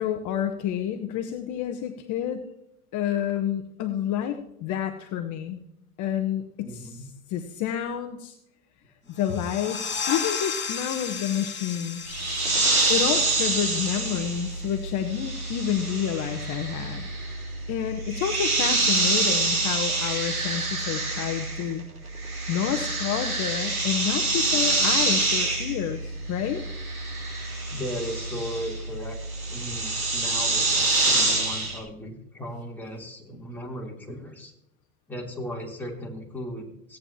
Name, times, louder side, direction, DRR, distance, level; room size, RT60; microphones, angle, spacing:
voice 1, 0.0-2.4 2.9-5.6 6.0-8.4 9.1-12.2 12.9-17.1 17.7-21.8 22.5-26.6, left 10 dB, 45° left, 6 dB, 1.0 m, -29 dB
voice 2, 6.6-7.0 9.0-9.1 27.7-29.2 29.5-34.5 35.1-37.0, equal, 5° left, -2 dB, 3.2 m, -37 dB
sound 1, 9.1-14.5, left 6 dB, 25° left, 2.4 m, -34 dB
sound 2, 12.1-21.8 22.1-31.8, right 2 dB, 90° right, 3.2 m, -26 dB
16.5 x 9.0 x 2.8 m, 0.80 s
hypercardioid pair, 90°, 43 cm